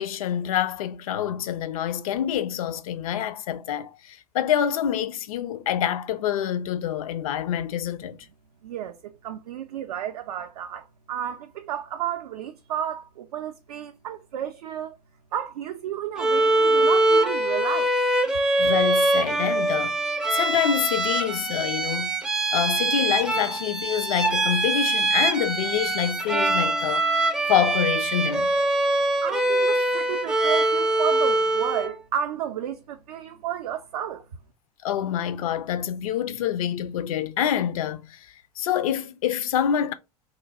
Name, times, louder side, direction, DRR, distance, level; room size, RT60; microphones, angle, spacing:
voice 1, 0.0-8.2 18.6-20.0 20.3-22.2 22.5-27.1 27.4-28.5 34.8-38.3 38.6-39.9, left 9 dB, 60° left, 0.4 m, -26 dB
voice 2, 8.6-15.0 15.3-17.9 29.2-34.2, right 10 dB, 65° right, 0.4 m, -32 dB
Bowed string instrument, 16.2-32.0, right 2 dB, 5° right, 0.4 m, -23 dB
3.1 x 2.2 x 3.4 m
figure-of-eight pair, 80°, 21 cm